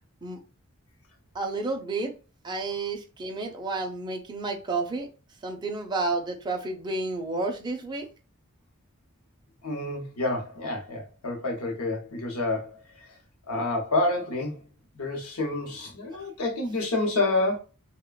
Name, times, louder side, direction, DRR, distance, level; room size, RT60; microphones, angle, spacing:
voice 1, 1.3-2.1 2.4-5.1 5.4-8.0, right 3 dB, 20° right, 0.4 m, -31 dB
voice 2, 9.6-12.8 13.5-14.6 15.0-17.6, left 2 dB, 80° left, 0.7 m, -28 dB
3.2 x 2.1 x 2.2 m
head